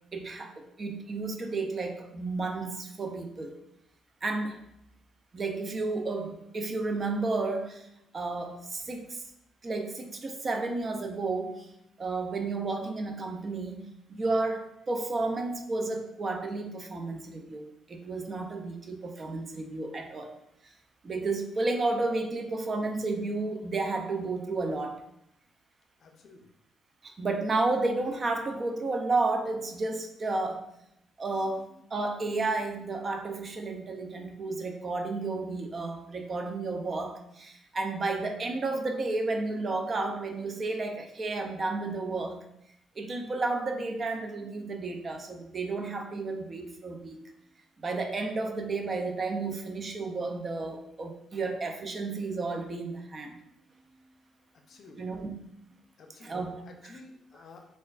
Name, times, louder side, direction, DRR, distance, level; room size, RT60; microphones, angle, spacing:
voice 1, 0.1-3.6 4.2-4.6 5.3-7.9 8.1-9.2 9.6-11.7 12.0-20.3 20.6-20.7 21.0-25.0 27.0-30.7 31.2-42.4 43.0-47.2 47.8-53.4 55.0-55.3 56.2-56.9, right 3 dB, 40° right, 4 dB, 0.5 m, -32 dB
voice 2, 26.0-26.5 54.5-55.1 56.0-56.4 56.7-57.7, left 3 dB, 60° left, 4 dB, 0.5 m, -51 dB
4.0 x 2.4 x 2.4 m, 0.79 s
cardioid pair, 90°, 0 cm